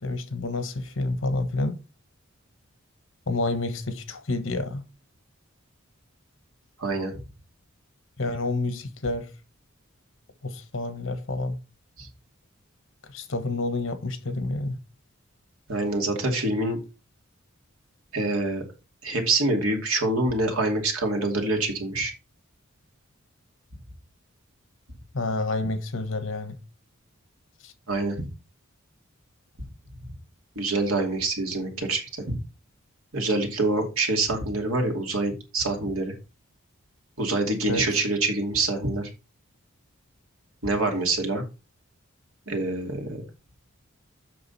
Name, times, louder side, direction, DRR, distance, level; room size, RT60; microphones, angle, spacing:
voice 1, 0.0-1.8 3.3-4.8 8.2-9.3 10.4-11.6 13.0-14.8 25.1-26.6 27.6-27.7 37.7-37.9, left 2 dB, 65° left, 1.3 m, -29 dB
voice 2, 6.8-7.1 12.0-12.1 15.7-16.8 18.1-18.6 19.0-22.1 27.9-28.3 30.6-32.3 33.1-36.1 37.2-39.1 40.6-41.4 42.5-43.2, right 2 dB, 85° right, 2.6 m, -26 dB
7.8 x 6.1 x 4.2 m
head